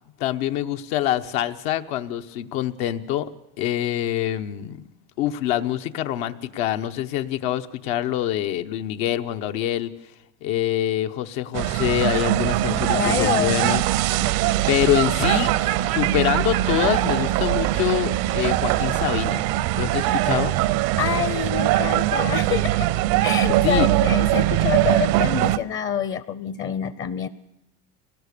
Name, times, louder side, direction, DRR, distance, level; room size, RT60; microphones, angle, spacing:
voice 1, 0.2-3.3 3.6-4.8 5.2-9.9 10.4-14.3 14.7-19.4 19.7-20.5 23.6-23.9, left 12 dB, 85° left, 7 dB, 1.1 m, -25 dB
sound 1, 11.5-25.6, right 15 dB, 70° right, 0.7 m, -22 dB
voice 2, 12.7-13.6 20.2-20.4 21.0-22.9 23.2-27.3, left 8 dB, 35° left, 15 dB, 0.7 m, -27 dB
23.5 x 18.5 x 6.9 m, 0.88 s
cardioid pair, 135°, 35 cm